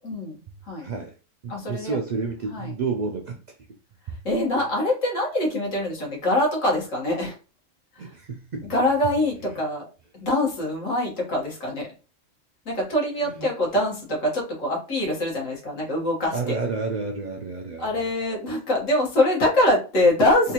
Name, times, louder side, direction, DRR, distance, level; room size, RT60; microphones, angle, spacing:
voice 1, 0.0-0.4 0.7-0.9 1.5-2.0 2.5-2.7 4.2-7.3 7.9-8.1 8.6-9.8 10.1-11.9 12.6-16.6 17.8-20.5, left 1 dB, 85° left, -3 dB, 1.7 m, -24 dB
voice 2, 0.8-1.2 1.4-3.4 4.1-4.2 8.0-8.7 9.5-9.6 13.2-13.5 16.3-18.1, right 4 dB, 80° right, 2 dB, 0.3 m, -30 dB
3.7 x 2.4 x 2.9 m, 0.34 s
omnidirectional pair, 1.3 m